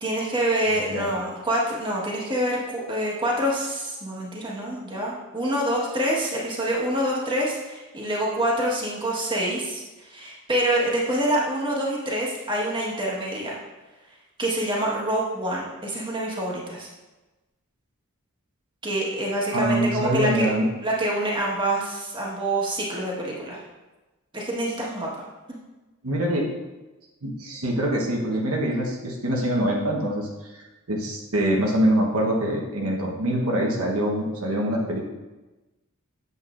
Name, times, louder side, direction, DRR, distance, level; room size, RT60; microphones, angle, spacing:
voice 1, 0.0-13.6 14.4-16.9 18.8-20.5 20.8-23.6 24.3-25.1, right 1 dB, 20° right, -4 dB, 1.4 m, -26 dB
voice 2, 19.5-20.7 26.0-26.5 27.2-30.3 30.9-35.1, right 1 dB, 75° right, -2 dB, 1.1 m, -24 dB
8.0 x 7.9 x 2.5 m, 1.1 s
head